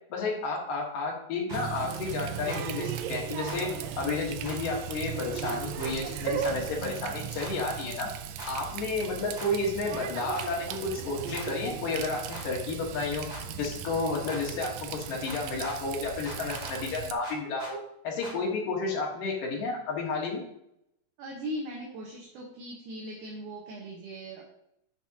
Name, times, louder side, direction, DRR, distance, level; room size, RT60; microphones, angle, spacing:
voice 1, 0.1-3.7 4.0-8.1 8.5-13.3 13.6-17.8 18.0-20.4, left 3 dB, 75° left, 0 dB, 3.1 m, -31 dB
sound 1, 1.5-1.6 2.5-2.6 3.5-3.6 4.4-4.6 5.4-5.9 6.4-6.5 7.4-7.5 8.4-8.5 9.4-9.5 10.3-10.5 11.3-11.5 12.3-12.4 13.3-13.4 14.3-14.4 15.3-15.8 16.2-16.7 17.2-17.7 18.2-18.4, equal, 15° right, 1.8 m, -41 dB
Water tap faucet, 1.5-17.1, right 9 dB, 85° right, 2.4 m, -37 dB
voice 2, 21.2-24.4, equal, 70° right, -1 dB, 2.5 m, -39 dB
11.0 x 5.9 x 2.9 m, 0.77 s
omnidirectional pair, 3.9 m